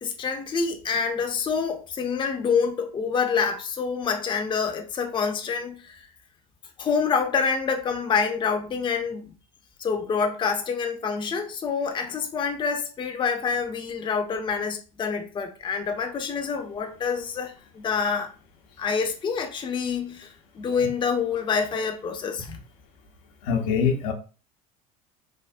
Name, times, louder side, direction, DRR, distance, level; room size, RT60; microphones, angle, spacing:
voice 1, 0.0-6.0 6.8-9.3 9.8-18.3 18.8-22.6, left 5 dB, 25° left, 0.6 m, -27 dB
voice 2, 23.4-24.1, left 6 dB, 70° left, 0.7 m, -23 dB
3.5 x 2.0 x 2.5 m
hypercardioid pair, 80°, 19 cm